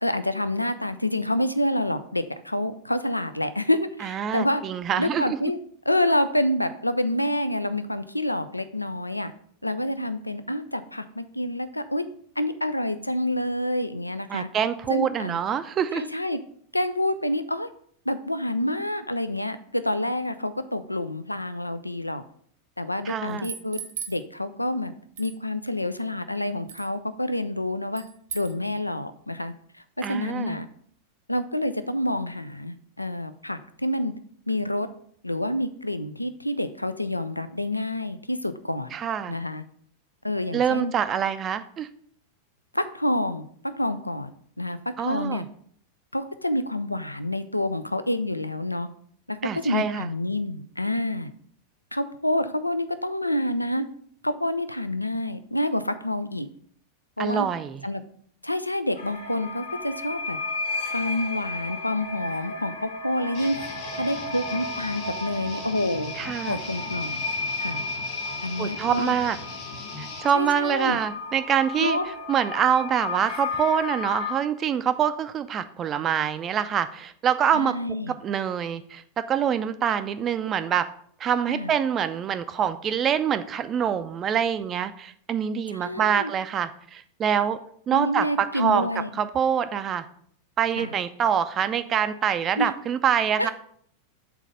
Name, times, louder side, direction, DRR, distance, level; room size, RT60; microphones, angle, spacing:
voice 1, 0.0-4.6 5.0-5.6 5.9-9.3 9.6-12.0 12.4-14.5 14.9-15.4 15.9-16.4 16.7-17.7 18.1-22.2 22.8-23.8 24.1-24.9 25.2-28.0 28.3-29.5 30.1-30.7 31.3-34.1 34.5-34.9 35.2-38.9 39.3-39.6 40.2-40.9 42.7-43.5 43.8-44.3 44.6-45.4 46.1-48.9 49.3-51.3 51.9-53.8 54.2-56.5 57.2-57.5 57.8-58.0 58.4-60.4 60.9-63.6 64.0-66.1 66.5-67.2 67.6-67.8 68.4-69.1 70.3-71.0 71.8-72.1 77.5-78.1 81.5-81.7 85.7-86.3 87.9-89.2 90.8-90.9 92.6-92.7 93.4-93.5, left 1 dB, 85° left, 12 dB, 0.4 m, -28 dB
voice 2, 4.0-5.4 14.3-16.1 23.1-23.5 30.0-30.6 38.9-39.3 40.5-41.9 45.0-45.5 49.4-50.1 57.2-57.9 66.2-66.6 68.6-69.4 70.0-72.0 72.3-80.9 81.2-87.6 87.9-88.9 89.2-90.0 90.6-93.5, right 8 dB, 25° right, 11 dB, 0.4 m, -25 dB
sound 1, 23.3-24.2 25.2-25.4 26.7-26.9 28.0-28.6, right 8 dB, 60° right, 0.8 m, -37 dB
sound 2, 58.9-74.3, left 3 dB, 60° left, 1.0 m, -34 dB
Guitar, 63.3-70.2, left 3 dB, 45° left, 2.0 m, -40 dB
6.0 x 4.1 x 5.3 m, 0.62 s
figure-of-eight pair, 90°, 0 cm